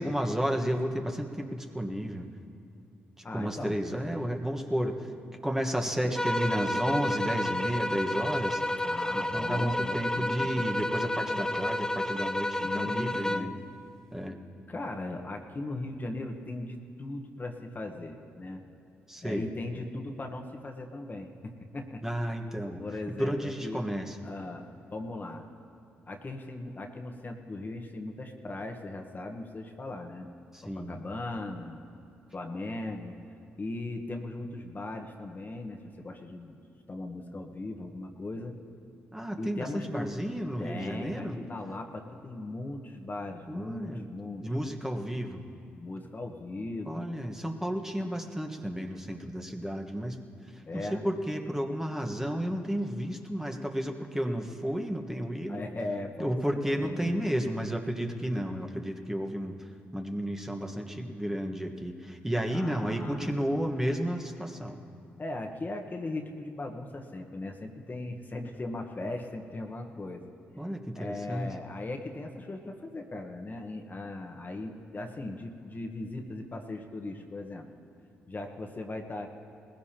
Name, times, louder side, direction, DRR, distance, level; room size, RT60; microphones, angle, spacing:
voice 1, 0.0-2.2 3.2-5.1 5.4-8.9 9.1-13.5 14.1-14.4 19.1-19.4 22.0-22.8 23.2-24.2 30.5-30.9 39.1-41.4 43.5-44.1 44.4-45.4 46.8-50.2 50.5-55.6 56.2-64.8 70.6-71.5, equal, 10° right, 2 dB, 1.4 m, -32 dB
voice 2, 3.2-3.8 5.8-6.2 8.8-10.6 12.6-13.6 14.7-18.6 19.2-22.0 22.7-23.8 24.2-25.4 26.1-30.3 30.6-31.9 32.3-33.2 33.6-36.6 36.9-38.5 39.4-40.1 40.6-44.5 45.8-47.1 50.7-51.0 55.5-57.1 62.5-63.3 65.2-70.2 70.9-77.7 78.3-79.3, left 2 dB, 35° left, 3 dB, 1.3 m, -38 dB
sound 1, 6.2-13.6, left 1 dB, 10° left, 0.6 m, -30 dB
20.0 x 16.0 x 3.0 m, 2.6 s
hypercardioid pair, 45°, 5 cm